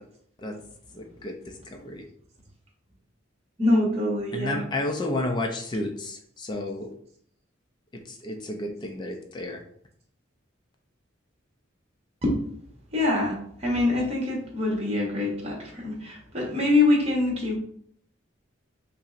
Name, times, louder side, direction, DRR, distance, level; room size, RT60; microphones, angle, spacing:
voice 1, 0.9-2.0 4.3-6.9 8.1-9.6, left 2 dB, 25° left, 3 dB, 0.3 m, -31 dB
voice 2, 3.6-4.6 12.2-12.5 12.9-17.6, left 2 dB, 35° right, -2 dB, 1.0 m, -24 dB
5.3 x 2.0 x 2.4 m, 0.65 s
head